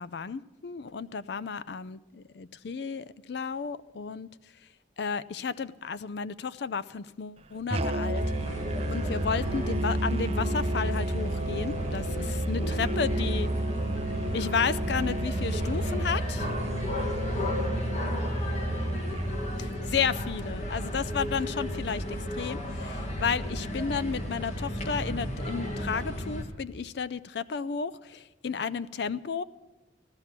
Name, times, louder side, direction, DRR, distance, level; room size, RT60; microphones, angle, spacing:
voice 1, 0.0-4.3 5.0-8.2 8.9-13.5 14.3-16.6 19.6-29.4, left 6 dB, 60° left, 16 dB, 0.4 m, -32 dB
Musical instrument, 7.7-19.4, right 1 dB, 30° right, 0.6 m, -31 dB
sound 1, 8.2-26.4, equal, 35° left, 1.8 m, -33 dB
15.0 x 12.5 x 5.9 m, 1.1 s
head